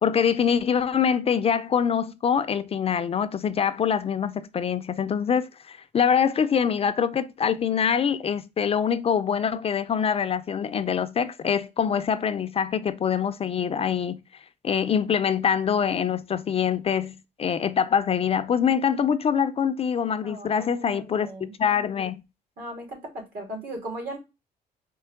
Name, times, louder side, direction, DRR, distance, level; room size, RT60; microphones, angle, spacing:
voice 1, 0.0-14.2 14.6-21.3 21.6-22.2, left 7 dB, 40° left, 0.4 m, -24 dB
voice 2, 20.2-21.5 22.6-24.2, right 1 dB, 65° right, 2.8 m, -37 dB
4.5 x 3.1 x 3.4 m
cardioid pair, 100°, 16 cm